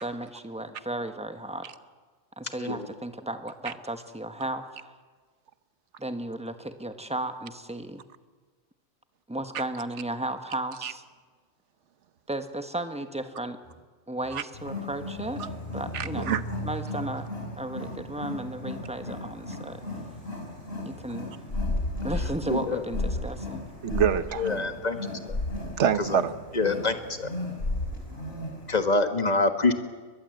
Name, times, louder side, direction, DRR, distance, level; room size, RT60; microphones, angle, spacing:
voice 1, 0.0-1.7 2.4-4.9 6.0-8.0 9.3-11.0 12.3-13.6 14.1-16.4 16.6-17.3 17.6-19.8 20.8-21.3 22.0-23.6, right 1 dB, 5° right, 7 dB, 1.3 m, -34 dB
Wild animals, 14.5-28.8, left 2 dB, 60° left, 4.9 m, -38 dB
voice 2, 15.9-16.6 23.8-24.5 25.8-26.3, right 8 dB, 90° right, 13 dB, 1.2 m, -26 dB
sound 1, 21.5-22.4 22.9-23.3 23.9-24.2 25.3-25.6 27.6-28.0, left 2 dB, 75° left, 3.9 m, -29 dB
voice 3, 22.5-22.8 24.4-25.0 25.3-25.4 26.5-27.3 28.7-29.7, left 3 dB, 40° left, 7 dB, 1.6 m, -25 dB
22.0 x 21.5 x 7.9 m, 1.4 s
omnidirectional pair, 1.2 m